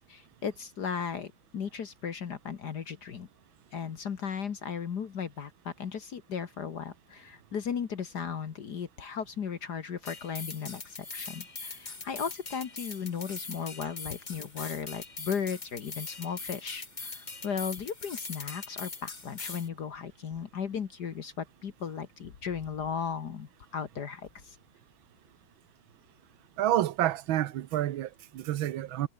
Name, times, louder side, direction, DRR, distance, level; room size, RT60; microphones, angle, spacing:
voice 1, 0.0-3.3 3.7-24.6, left 7 dB, 55° left, 1.9 m, -36 dB
sound 1, 10.1-19.7, left 4 dB, 25° left, 1.5 m, -42 dB
voice 2, 26.6-29.1, right 13 dB, 75° right, 1.6 m, -29 dB
omnidirectional pair, 2.2 m